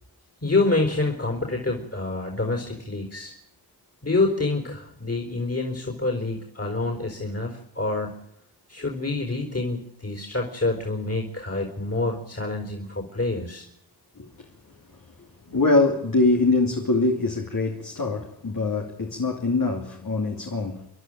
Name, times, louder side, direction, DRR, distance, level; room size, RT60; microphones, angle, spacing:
voice 1, 0.4-3.3 4.0-8.2 8.7-13.7 15.5-15.6, left 2 dB, 35° left, 4.6 m, -27 dB
voice 2, 15.5-20.9, left 3 dB, 50° left, 2.8 m, -23 dB
30.0 x 11.5 x 9.1 m
cardioid pair, 50°, 43 cm